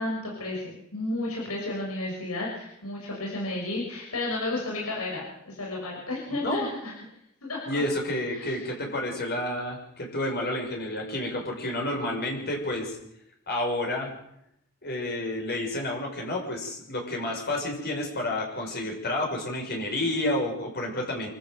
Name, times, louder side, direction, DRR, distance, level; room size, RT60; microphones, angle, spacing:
voice 1, 0.0-6.9 7.4-7.8 8.3-8.6, left 2 dB, 90° left, -3 dB, 6.6 m, -32 dB
voice 2, 6.3-6.7 7.7-13.0 13.5-14.1 14.8-21.3, left 1 dB, 50° left, 1 dB, 6.3 m, -30 dB
27.0 x 14.0 x 8.0 m, 0.77 s
head